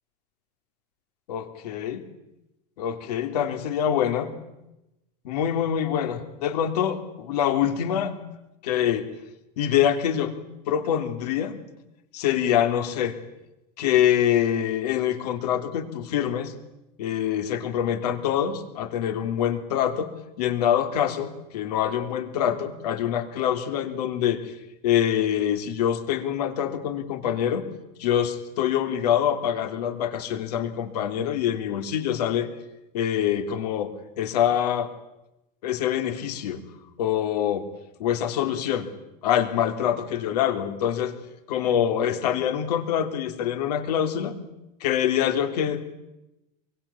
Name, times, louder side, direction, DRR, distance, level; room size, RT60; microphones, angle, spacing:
voice 1, 1.3-2.0 2.8-4.3 5.2-8.1 8.6-9.1 9.6-10.3 10.7-11.6 12.1-13.2 13.8-16.5 17.0-24.5 24.8-27.6 28.0-32.5 32.9-33.9 34.2-34.9 35.6-36.6 37.0-37.7 38.0-38.9 39.2-41.1 41.5-44.3 44.8-45.9, left 10 dB, 85° left, 8 dB, 3.5 m, -25 dB
25.5 x 24.0 x 8.7 m, 0.92 s
supercardioid pair, 175°, 20 cm